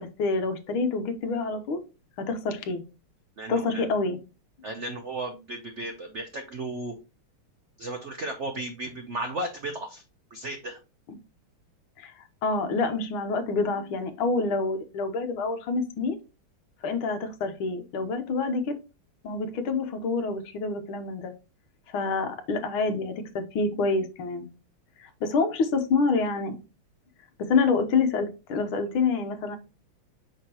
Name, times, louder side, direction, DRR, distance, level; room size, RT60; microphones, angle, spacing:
voice 1, 0.0-1.8 2.2-2.8 3.5-4.2 12.0-12.1 12.4-16.2 16.8-18.8 19.2-21.3 21.9-24.5 25.0-26.6 27.4-29.6, left 4 dB, 75° left, 7 dB, 1.8 m, -27 dB
voice 2, 3.4-3.9 4.6-6.9 7.8-10.0 10.3-10.8, right 2 dB, 90° right, 5 dB, 0.6 m, -34 dB
5.8 x 5.7 x 2.9 m, 0.29 s
omnidirectional pair, 2.4 m